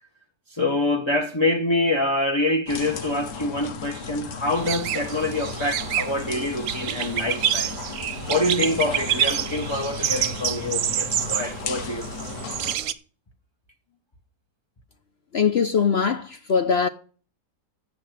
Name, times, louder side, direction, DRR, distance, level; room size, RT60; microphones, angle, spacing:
voice 1, 0.5-7.7 8.3-12.1, left 2 dB, 20° left, 0.8 m, -25 dB
sound 1, 2.7-12.8, left 6 dB, 90° left, 1.8 m, -36 dB
sound 2, 4.6-12.9, right 10 dB, 65° right, 1.1 m, -28 dB
voice 2, 15.3-16.9, left 6 dB, 55° left, 0.7 m, -21 dB
8.7 x 7.5 x 7.9 m
omnidirectional pair, 1.8 m